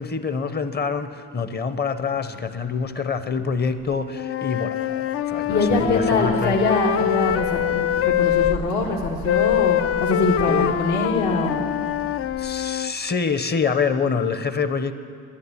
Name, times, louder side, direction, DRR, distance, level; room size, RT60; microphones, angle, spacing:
voice 1, 0.0-6.6 10.5-10.8 12.4-14.9, left 5 dB, 35° left, 10 dB, 0.9 m, -26 dB
Wind instrument woodwind instrument, 4.1-8.6 9.3-12.9, left 11 dB, 50° left, 0.4 m, -24 dB
voice 2, 5.5-11.6, left 3 dB, 70° left, -2 dB, 1.8 m, -23 dB
11.5 x 10.5 x 9.8 m, 2.3 s
cardioid pair, 90°, 30 cm